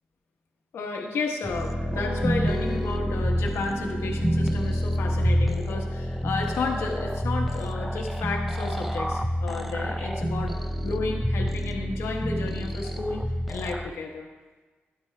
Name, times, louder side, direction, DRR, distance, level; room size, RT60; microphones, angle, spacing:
voice 1, 0.7-10.5 10.8-14.3, left 3 dB, 85° left, 1 dB, 1.1 m, -32 dB
sound 1, 1.4-13.9, equal, 5° right, 0.5 m, -28 dB
sound 2, 1.9-6.6, equal, 85° right, 1.8 m, -41 dB
13.0 x 10.5 x 2.2 m, 1.3 s
cardioid pair, 85°, 4 cm